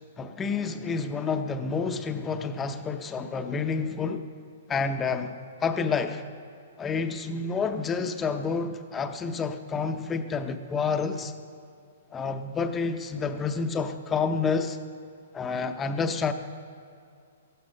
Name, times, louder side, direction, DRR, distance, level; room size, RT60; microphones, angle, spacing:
voice 1, 0.2-4.3 4.7-5.4 5.6-6.2 6.8-11.3 12.1-14.8 15.3-16.3, left 5 dB, 10° left, 8 dB, 0.6 m, -29 dB
15.0 x 12.5 x 5.4 m, 2.4 s
hypercardioid pair, 160°, 0 cm